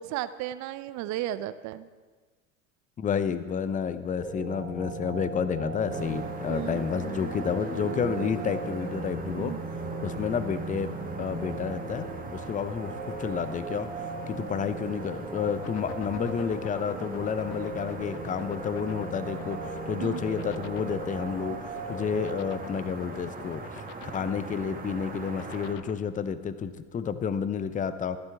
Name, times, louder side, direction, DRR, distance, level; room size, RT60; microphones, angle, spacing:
voice 1, 0.0-1.9 6.5-6.8 9.4-9.6 20.0-20.2, right 13 dB, 45° right, 14 dB, 0.6 m, -34 dB
voice 2, 3.0-9.6 10.0-12.1 12.3-13.9 14.3-23.8 24.1-28.2, left 7 dB, 20° left, 12 dB, 0.6 m, -30 dB
sound 1, 4.1-22.5, right 3 dB, ahead, 2.5 m, -38 dB
sound 2, 5.9-25.7, right 3 dB, 20° right, 1.6 m, -40 dB
sound 3, 15.5-25.9, left 16 dB, 60° left, 0.6 m, -44 dB
14.5 x 12.0 x 3.5 m, 1.4 s
hypercardioid pair, 85°, 39 cm